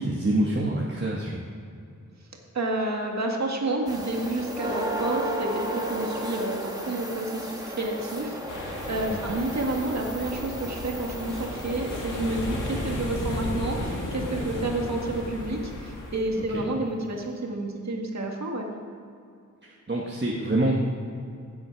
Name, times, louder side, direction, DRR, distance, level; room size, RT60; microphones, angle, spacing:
voice 1, 0.0-1.4 9.1-9.2 16.4-16.6 19.6-20.8, right 1 dB, 35° right, -3 dB, 1.3 m, -26 dB
voice 2, 2.5-18.7, right 2 dB, 60° right, 1 dB, 1.8 m, -30 dB
sound 1, 3.9-14.5 16.5-16.6 17.2-17.3, right 1 dB, 10° right, 1.6 m, -35 dB
sound 2, 8.5-16.2, left 1 dB, 75° left, 1.9 m, -34 dB
16.0 x 7.7 x 4.7 m, 2.4 s
wide cardioid pair, 90°, 31 cm